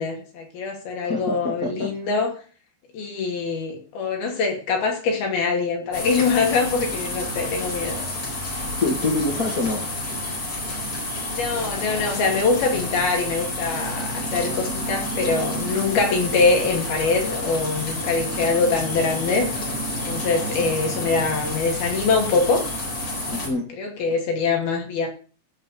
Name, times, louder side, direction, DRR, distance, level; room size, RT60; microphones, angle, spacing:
voice 1, 0.0-2.3 2.9-8.0 11.3-19.6 19.9-22.6 23.3-25.1, left 4 dB, 65° left, 2 dB, 4.4 m, -24 dB
voice 2, 1.1-1.9 8.8-9.8 23.3-23.7, left 3 dB, 85° left, 2 dB, 0.7 m, -25 dB
sound 1, 5.9-23.5, left 1 dB, 35° left, 4.9 m, -29 dB
15.0 x 5.8 x 6.7 m, 0.39 s
omnidirectional pair, 4.7 m